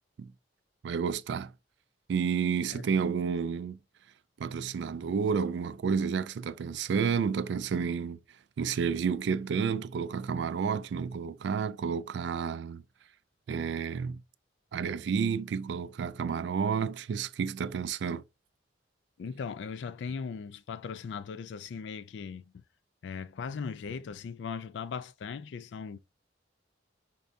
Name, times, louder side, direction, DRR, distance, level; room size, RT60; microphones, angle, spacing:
voice 1, 0.8-1.5 2.1-3.8 4.4-8.2 8.6-12.8 13.5-14.2 14.7-18.2, right 6 dB, 65° right, 0.3 m, -30 dB
voice 2, 19.2-22.6 23.0-26.0, left 6 dB, 70° left, 0.3 m, -38 dB
5.3 x 3.4 x 2.6 m
head